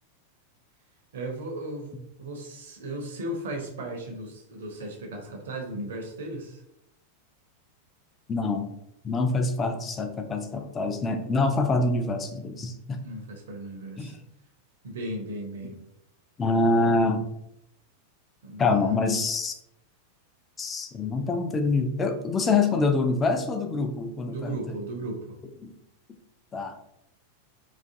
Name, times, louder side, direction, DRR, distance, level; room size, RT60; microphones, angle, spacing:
voice 1, 1.1-6.6 13.0-14.2 14.8-15.8 18.4-18.9 24.3-25.4, right 1 dB, 60° right, 2 dB, 0.5 m, -36 dB
voice 2, 8.3-8.7 9.0-13.1 14.0-14.1 16.4-17.3 18.6-19.5 20.6-24.8 25.6-25.7 26.5-26.8, left 3 dB, 20° left, 6 dB, 0.3 m, -25 dB
2.4 x 2.4 x 2.5 m, 0.80 s
figure-of-eight pair, 90°, 0 cm